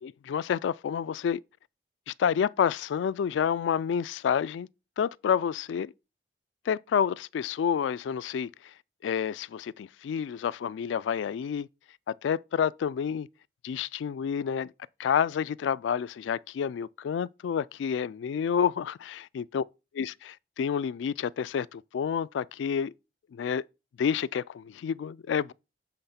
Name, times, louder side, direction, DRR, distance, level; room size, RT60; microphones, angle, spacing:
voice 1, 0.0-1.4 2.1-4.7 5.0-5.9 6.7-8.7 9.0-11.7 12.1-13.3 13.6-14.7 15.0-19.6 19.9-22.9 23.3-23.6 24.0-25.5, left 7 dB, 85° left, 0.3 m, -29 dB
7.9 x 3.6 x 5.6 m
head